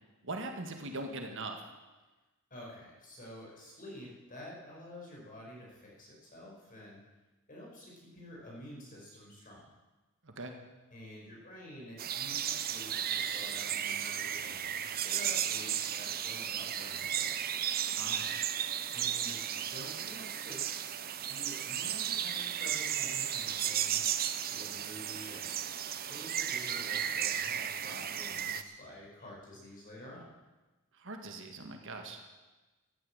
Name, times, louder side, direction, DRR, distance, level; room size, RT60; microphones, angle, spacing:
voice 1, 0.2-1.6 10.2-10.5 17.8-18.3 30.9-32.3, right 2 dB, 60° right, 4 dB, 1.8 m, -41 dB
voice 2, 2.5-7.0 7.5-9.6 10.9-17.4 18.9-20.7 21.3-24.0 24.4-25.5 26.1-30.3, left 1 dB, 40° left, -3 dB, 5.3 m, -49 dB
sound 1, 12.0-28.6, right 9 dB, 45° right, 0.7 m, -34 dB
14.0 x 10.0 x 8.8 m, 1.2 s
head